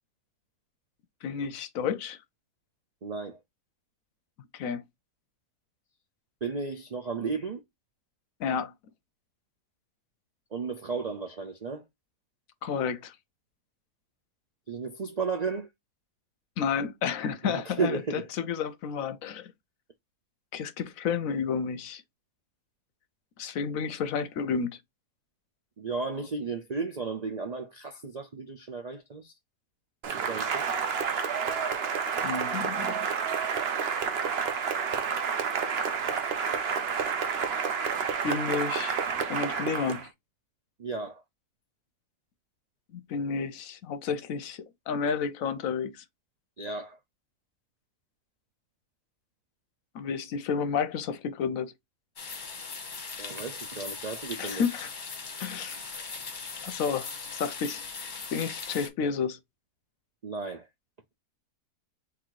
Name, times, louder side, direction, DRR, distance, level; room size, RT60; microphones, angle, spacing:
voice 1, 1.2-2.2 4.5-4.8 8.4-8.7 12.6-13.2 16.6-19.5 20.5-22.0 23.4-24.8 32.2-33.0 38.2-39.0 39.3-40.1 43.1-46.0 49.9-51.7 54.4-54.9 55.4-55.8 56.6-59.4, left 6 dB, 70° left, 1.0 m, -31 dB
voice 2, 3.0-3.4 6.4-7.6 10.5-11.8 14.7-15.7 17.4-18.2 25.8-29.3 30.3-30.7 40.8-41.2 46.6-47.0 53.2-54.6 60.2-60.7, right 4 dB, 80° right, 0.3 m, -34 dB
Cheering / Applause, 30.0-40.1, right 6 dB, 50° right, 0.8 m, -29 dB
sound 1, 52.2-58.9, left 4 dB, 35° left, 1.0 m, -39 dB
3.9 x 2.9 x 4.6 m
omnidirectional pair, 1.6 m